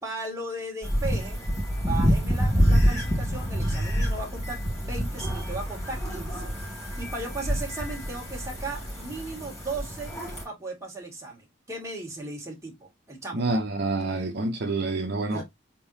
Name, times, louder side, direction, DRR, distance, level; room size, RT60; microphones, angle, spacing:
voice 1, 0.0-1.4 1.8-10.1 10.4-13.6 15.3-15.4, right 2 dB, 15° right, 1.9 m, -37 dB
sound 1, 0.8-10.4, equal, 20° left, 3.2 m, -27 dB
voice 2, 13.3-15.4, right 2 dB, 55° right, 0.7 m, -27 dB
4.5 x 3.8 x 2.6 m
head